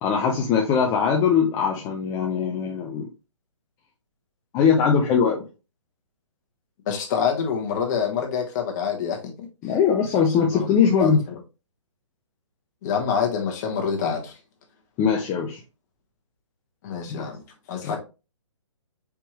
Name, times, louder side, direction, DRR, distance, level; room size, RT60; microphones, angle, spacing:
voice 1, 0.0-3.1 4.5-5.4 9.6-11.2 15.0-15.6 17.1-17.3 17.8-18.0, left 6 dB, 15° left, 0.5 m, -21 dB
voice 2, 6.9-9.5 10.4-11.2 12.8-14.3 16.8-17.4 17.7-18.0, left 7 dB, 35° left, 1.3 m, -26 dB
4.6 x 3.4 x 3.0 m
hypercardioid pair, 150°, 17 cm